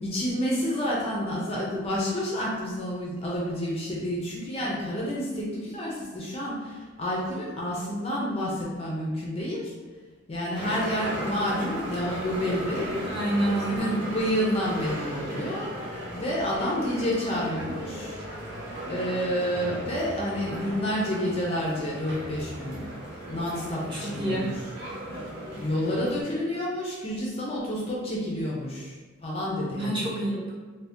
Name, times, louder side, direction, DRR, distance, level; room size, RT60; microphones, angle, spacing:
voice 1, 0.0-9.7 10.3-13.0 13.7-15.7 16.1-18.2 18.9-22.9 23.2-24.5 25.2-25.3 25.5-30.0, equal, 30° left, -4 dB, 0.4 m, -29 dB
sound 1, 10.5-26.2, right 1 dB, 55° right, 0.7 m, -36 dB
voice 2, 13.0-14.0 23.9-24.6 29.7-30.5, right 1 dB, 25° right, -7 dB, 0.8 m, -28 dB
2.6 x 2.1 x 3.4 m, 1.4 s
head